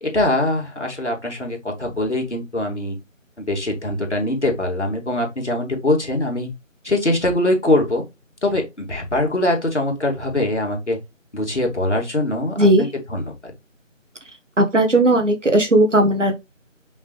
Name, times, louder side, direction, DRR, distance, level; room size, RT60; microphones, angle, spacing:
voice 1, 0.0-3.0 3.4-6.5 6.8-8.0 8.4-11.0 11.3-13.5, left 1 dB, 60° left, 2.8 m, -22 dB
voice 2, 12.6-12.9 14.6-16.3, right 1 dB, 65° right, 1.8 m, -16 dB
5.5 x 5.5 x 3.4 m
figure-of-eight pair, 180°, 40 cm